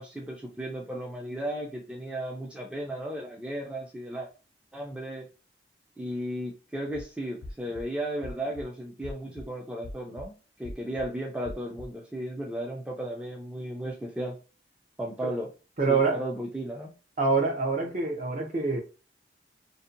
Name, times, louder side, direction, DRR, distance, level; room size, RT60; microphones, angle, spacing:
voice 1, 0.0-4.3 4.7-5.3 6.0-10.3 10.6-14.4 15.0-15.5 15.9-16.9, right 1 dB, 5° right, 0.3 m, -35 dB
sound 1, 6.8-7.0 7.4-7.8 8.2-8.6 9.0-9.5 9.8-10.3 10.6-11.1 11.4-11.9, left 1 dB, 70° left, 0.4 m, -42 dB
voice 2, 15.8-16.2 17.2-18.8, right 4 dB, 45° right, 0.6 m, -25 dB
2.6 x 2.1 x 2.5 m
head